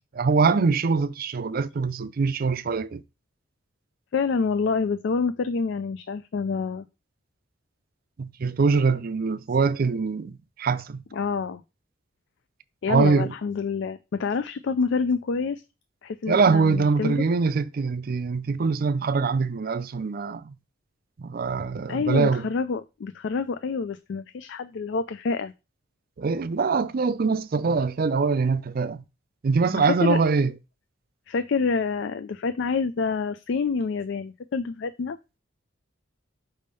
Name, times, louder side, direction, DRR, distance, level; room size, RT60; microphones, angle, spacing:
voice 1, 0.1-3.0 8.2-11.0 12.9-13.3 16.3-20.5 21.2-22.4 26.2-29.0 29.4-30.5, right 4 dB, 50° right, 0.4 m, -23 dB
voice 2, 4.1-6.9 11.1-11.6 12.8-15.6 16.0-17.2 21.9-25.5 29.8-30.2 31.3-35.2, left 5 dB, 65° left, 0.4 m, -27 dB
5.4 x 3.5 x 5.3 m
head